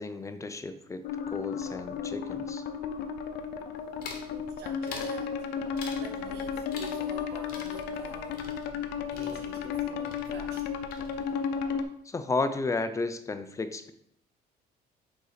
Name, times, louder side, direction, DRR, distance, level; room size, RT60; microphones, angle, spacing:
voice 1, 0.0-2.6 12.0-13.9, left 3 dB, 20° left, 10 dB, 0.5 m, -33 dB
sound 1, 1.0-11.8, left 6 dB, 85° left, 0.6 m, -34 dB
sound 2, 4.0-4.3 4.9-5.2 5.8-6.1 6.7-7.2 7.5-9.8 10.1-10.6 10.9-11.5, left 4 dB, 60° left, 1.1 m, -45 dB
voice 2, 4.5-5.5 6.0-8.5 9.1-10.8, right 4 dB, 75° right, 1 dB, 1.4 m, -48 dB
sound 3, 5.5-11.1, right 2 dB, 15° right, 1.4 m, -53 dB
5.4 x 4.4 x 4.0 m, 0.71 s
cardioid pair, 110°, 17 cm